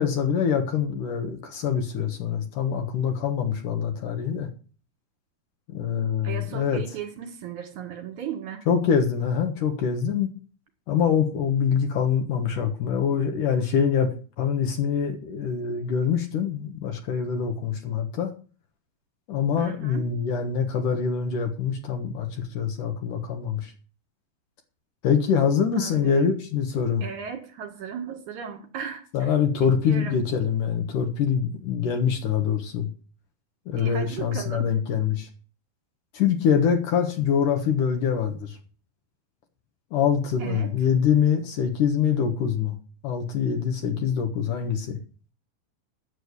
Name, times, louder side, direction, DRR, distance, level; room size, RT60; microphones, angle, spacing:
voice 1, 0.0-4.5 5.7-6.8 8.7-10.3 10.9-18.3 19.3-23.7 25.0-27.1 29.1-32.9 33.7-35.3 36.1-38.6 39.9-42.8 43.0-45.0, left 7 dB, 65° left, 3 dB, 2.7 m, -24 dB
voice 2, 6.2-8.7 19.6-20.1 25.7-26.3 27.0-29.3 29.6-30.2 33.8-34.7 40.4-40.7, right 8 dB, 60° right, 5 dB, 3.0 m, -36 dB
9.9 x 7.6 x 8.1 m, 0.39 s
omnidirectional pair, 4.3 m